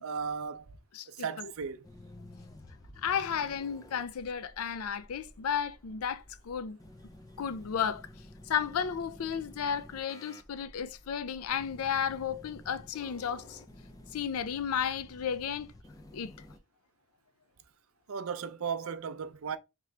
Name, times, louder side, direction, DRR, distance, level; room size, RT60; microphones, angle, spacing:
voice 1, 0.0-0.8 1.1-1.8 18.1-19.6, right 6 dB, 70° right, 0.5 m, -36 dB
voice 2, 0.9-1.5 3.0-6.8 7.4-8.1 8.5-13.6 14.1-15.7 16.1-16.3, left 7 dB, 75° left, 0.4 m, -33 dB
sound 1, 1.8-16.6, left 1 dB, 15° left, 0.4 m, -52 dB
3.6 x 3.0 x 3.3 m
head